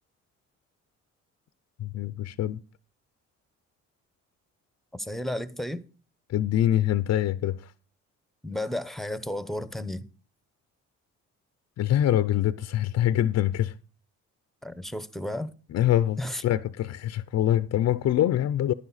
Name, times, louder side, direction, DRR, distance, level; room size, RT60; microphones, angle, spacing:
voice 1, 1.8-2.6 6.3-7.7 11.8-13.8 15.7-18.7, left 12 dB, 60° left, 0.6 m, -24 dB
voice 2, 4.9-5.8 8.4-10.1 14.6-15.5 16.2-16.4, left 1 dB, ahead, 0.9 m, -33 dB
11.5 x 9.9 x 4.1 m
cardioid pair, 90°, 30 cm